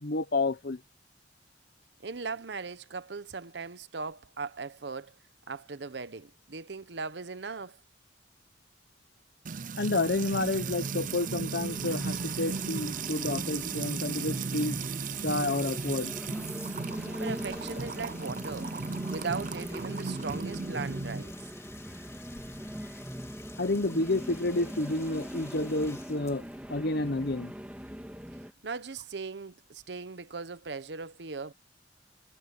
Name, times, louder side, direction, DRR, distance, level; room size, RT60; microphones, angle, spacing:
voice 1, 0.0-0.8 9.8-14.8 15.2-16.1 23.6-26.4 26.7-27.5, left 2 dB, 60° left, 1.1 m, -30 dB
voice 2, 2.0-5.1 5.5-7.8 17.2-18.7 19.1-21.4 28.6-31.5, right 4 dB, 70° right, 0.9 m, -38 dB
Music / Water tap faucet / Trickle dribble, 9.5-21.2, right 5 dB, 45° right, 0.6 m, -36 dB
sound 1, 9.9-28.5, equal, 10° right, 1.8 m, -42 dB
Bathtub (filling or washing), 11.5-28.2, left 3 dB, 15° left, 2.6 m, -52 dB
head